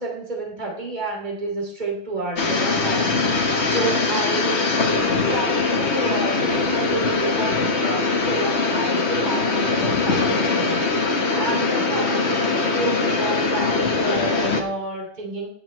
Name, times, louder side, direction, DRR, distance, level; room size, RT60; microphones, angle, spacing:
voice 1, 0.0-4.7 5.3-15.5, right 2 dB, 45° right, -1 dB, 3.0 m, -30 dB
sound 1, 2.4-14.6, left 3 dB, 80° left, 1.8 m, -22 dB
18.5 x 7.1 x 3.2 m, 0.70 s
omnidirectional pair, 1.1 m